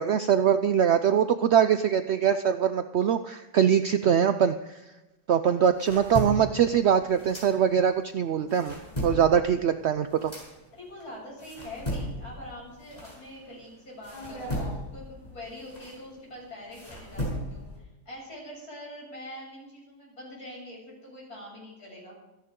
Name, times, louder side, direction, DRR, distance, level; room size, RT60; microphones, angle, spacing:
voice 1, 0.0-4.8 5.3-8.8 9.0-10.3, right 8 dB, 75° right, 10 dB, 0.6 m, -23 dB
sound 1, 5.4-8.0 8.3-13.6 14.0-17.8, equal, 25° left, 6.2 m, -36 dB
voice 2, 10.7-22.2, left 1 dB, 60° left, -3 dB, 7.8 m, -44 dB
25.5 x 11.0 x 3.7 m, 1.0 s
omnidirectional pair, 1.8 m